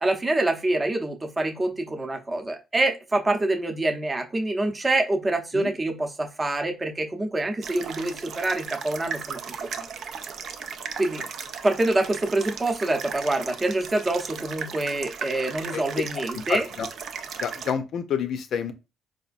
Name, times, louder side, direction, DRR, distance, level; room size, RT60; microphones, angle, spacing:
voice 1, 0.0-9.4 9.8-9.9 11.0-11.2 11.6-16.7, right 2 dB, 25° right, 0.7 m, -26 dB
sound 1, 7.6-17.7, right 6 dB, 65° right, 0.4 m, -36 dB
voice 2, 16.5-16.9 17.4-18.7, left 7 dB, 70° left, 0.5 m, -28 dB
4.2 x 2.4 x 2.4 m
cardioid pair, 90°, 0 cm